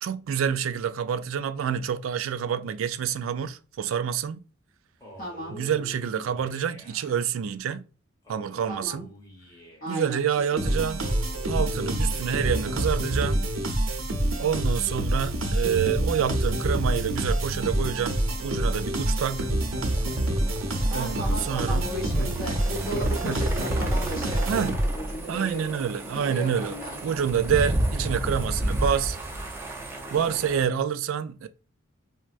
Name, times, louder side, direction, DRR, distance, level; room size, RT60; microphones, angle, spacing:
voice 1, 0.0-4.4 5.5-7.8 8.3-9.1 9.9-11.0 11.5-13.4 14.4-19.5 20.9-21.8 22.1-22.3 23.2-23.4 24.5-24.7 25.3-26.8 27.0-29.2 30.1-31.5, right 8 dB, 75° right, 0.3 m, -27 dB
Male speech man speaking, 5.0-7.2 8.2-10.1 11.0-13.0, left 1 dB, 15° left, 0.8 m, -47 dB
voice 2, 5.2-5.6 8.7-9.1 9.8-10.2 10.5-10.8 20.9-25.7 26.1-27.0, equal, 40° left, 1.1 m, -36 dB
sound 1, 10.6-25.1, right 1 dB, 90° right, 0.8 m, -27 dB
sound 2, 17.7-30.6, right 1 dB, 10° right, 0.5 m, -34 dB
4.4 x 2.1 x 2.5 m
head